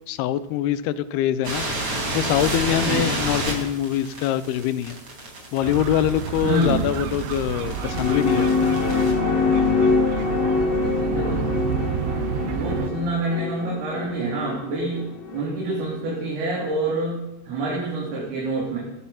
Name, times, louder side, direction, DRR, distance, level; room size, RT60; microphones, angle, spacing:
voice 1, 0.1-1.7 2.1-5.0 5.5-9.2, left 11 dB, 75° left, 14 dB, 2.5 m, -24 dB
sound 1, 1.4-9.1, right 1 dB, 35° right, 5.2 m, -31 dB
sound 2, 5.6-12.9, right 11 dB, 80° right, 2.8 m, -30 dB
voice 2, 6.4-6.9 10.8-11.4 12.5-15.1 15.3-18.8, right 2 dB, 60° right, -4 dB, 5.1 m, -27 dB
sound 3, 7.5-16.2, left 4 dB, 30° left, 2.3 m, -24 dB
16.0 x 15.5 x 5.7 m, 0.91 s
omnidirectional pair, 5.1 m